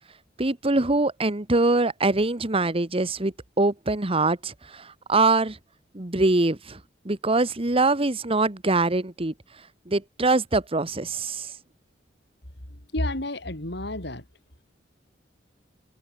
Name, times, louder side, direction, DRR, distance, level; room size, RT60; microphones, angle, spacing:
voice 1, 0.4-5.6 5.9-6.8 7.0-9.3 9.9-11.5, right 2 dB, 30° right, 1.4 m, -23 dB
voice 2, 12.7-14.2, left 1 dB, 65° left, 5.0 m, -31 dB
head